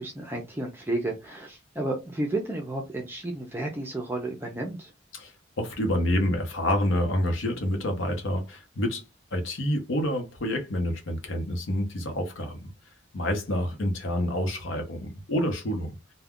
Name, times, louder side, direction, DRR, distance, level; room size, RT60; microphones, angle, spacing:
voice 1, 0.0-4.9, right 2 dB, 10° right, 0.4 m, -32 dB
voice 2, 5.1-9.0 9.3-12.7 13.1-16.0, left 1 dB, 80° left, 0.8 m, -28 dB
2.3 x 2.1 x 3.5 m
head